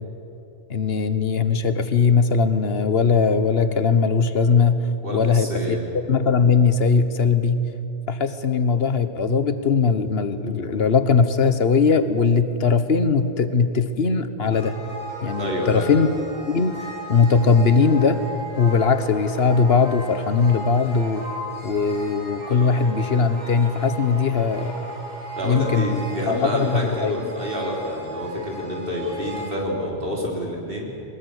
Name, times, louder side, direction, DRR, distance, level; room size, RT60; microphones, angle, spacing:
voice 1, 0.7-5.8 6.1-7.7 8.1-14.8 15.2-16.1 16.5-16.8 17.1-18.2 18.6-21.3 21.6-24.8 25.4-27.3, left 5 dB, 65° left, 11 dB, 1.4 m, -20 dB
voice 2, 5.0-5.8 15.4-15.9 25.4-30.9, equal, 55° right, -2 dB, 4.4 m, -28 dB
sound 1, 14.5-29.5, right 1 dB, 40° right, 6.8 m, -36 dB
23.5 x 20.5 x 8.1 m, 2.9 s
omnidirectional pair, 1.1 m